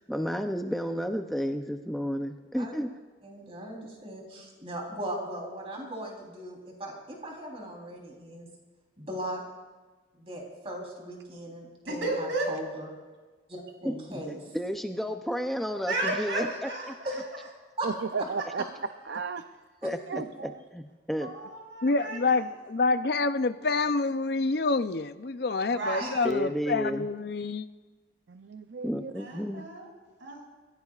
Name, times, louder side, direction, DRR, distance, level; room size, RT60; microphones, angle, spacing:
voice 1, 0.0-2.9 13.8-14.2 14.5-16.7 19.8-20.0 20.4-21.3 26.2-27.1 28.8-29.7, equal, ahead, 5 dB, 0.5 m, -32 dB
voice 2, 3.2-8.5 9.0-9.4 10.1-12.9 13.5-14.4 17.8-17.9 19.8-20.2 26.0-26.3, right 1 dB, 30° right, -1 dB, 3.6 m, -38 dB
voice 3, 11.8-12.5 15.9-17.2 21.2-22.4 25.7-26.1 29.2-29.9 30.2-30.4, right 2 dB, 85° right, -2 dB, 6.1 m, -33 dB
voice 4, 17.8-18.6 19.1-19.4 20.1-20.6 28.3-29.1, right 5 dB, 70° right, 9 dB, 0.5 m, -34 dB
voice 5, 21.8-27.7, left 3 dB, 55° left, 11 dB, 0.5 m, -27 dB
29.5 x 16.0 x 2.4 m, 1.3 s
head